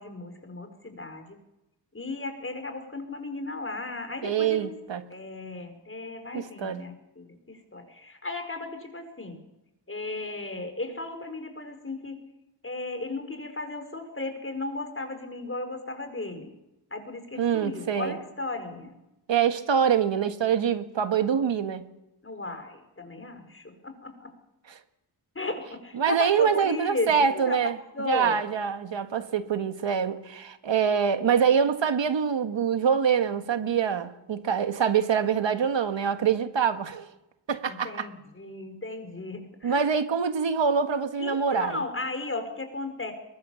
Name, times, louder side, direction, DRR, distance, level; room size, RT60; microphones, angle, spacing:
voice 1, 0.0-1.4 1.9-4.7 5.1-9.4 9.9-12.2 12.6-16.6 16.9-19.0 22.2-24.3 25.4-27.6 27.9-28.4 37.6-39.9 41.2-43.1, left 2 dB, 30° left, 5.0 m, -35 dB
voice 2, 4.2-5.0 6.3-6.8 17.4-18.2 19.3-21.9 24.7-24.8 25.9-27.8 28.0-37.1 37.5-38.1 39.6-41.8, right 7 dB, 90° right, 1.7 m, -25 dB
22.5 x 21.5 x 7.0 m
wide cardioid pair, 75°, 43 cm